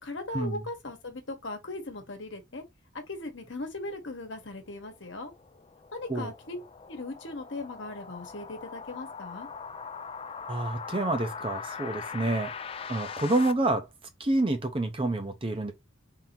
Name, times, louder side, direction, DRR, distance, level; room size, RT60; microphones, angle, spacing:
voice 1, 0.0-2.6 3.1-5.3 5.9-6.6 6.9-9.5, left 2 dB, 60° left, 1.2 m, -38 dB
sound 1, 4.8-13.5, left 6 dB, 30° left, 0.3 m, -41 dB
voice 2, 10.5-12.5 12.9-13.9 14.2-15.7, right 2 dB, 25° right, 0.6 m, -28 dB
3.7 x 2.8 x 4.3 m
head